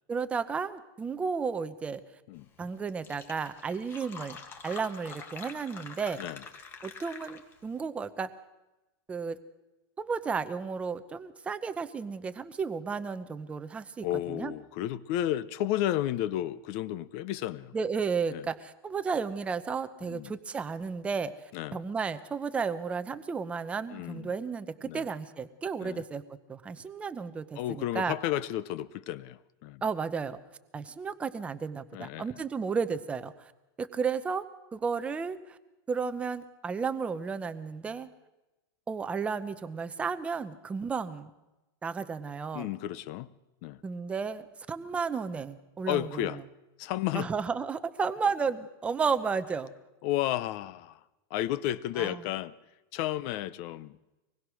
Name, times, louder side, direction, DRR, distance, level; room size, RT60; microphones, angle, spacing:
voice 1, 0.1-2.0 2.6-6.2 6.8-8.3 9.1-9.4 10.0-14.5 17.7-26.2 26.5-28.1 29.8-30.4 30.7-33.5 33.8-34.4 34.7-35.6 35.9-38.1 38.9-41.3 41.8-42.7 43.8-46.3 47.1-49.7 52.0-52.2, right 5 dB, 10° right, 11 dB, 0.7 m, -33 dB
Fill (with liquid), 2.6-2.7 2.9-7.7, left 5 dB, 20° left, 1.6 m, -46 dB
voice 2, 14.0-17.7 18.3-18.4 20.0-20.3 21.5-21.8 23.9-24.3 24.8-25.1 25.8-26.0 27.6-29.8 31.9-32.4 42.5-43.3 43.6-43.8 45.9-46.4 46.8-47.3 50.0-51.0 51.3-52.6 52.9-54.0, left 13 dB, 35° left, 18 dB, 0.6 m, -32 dB
24.5 x 20.0 x 6.3 m, 1.0 s
supercardioid pair, 170°, 12 cm